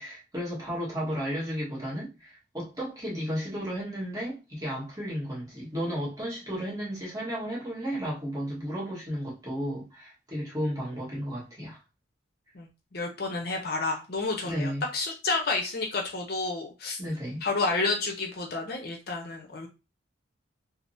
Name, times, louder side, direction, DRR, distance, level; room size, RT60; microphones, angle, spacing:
voice 1, 0.0-11.8 14.4-14.8 17.0-17.5, equal, 20° right, 1.3 m, -33 dB
voice 2, 12.5-17.0 17.4-19.7, left 3 dB, 50° left, 0.6 m, -30 dB
3.4 x 2.0 x 2.6 m
head